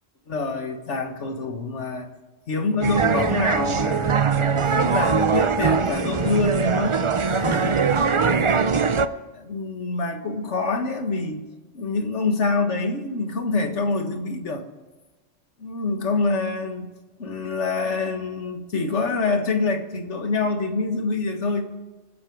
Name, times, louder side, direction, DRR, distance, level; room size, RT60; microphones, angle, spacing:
voice 1, 0.3-2.1 2.5-4.2 4.5-7.0 7.3-8.9 9.3-11.4 11.7-14.7 15.6-16.9 17.2-21.6, left 3 dB, 60° left, 6 dB, 1.9 m, -26 dB
sound 1, 2.8-9.1, right 5 dB, 40° right, 0.4 m, -21 dB
26.0 x 9.9 x 4.7 m, 1.2 s
omnidirectional pair, 1.3 m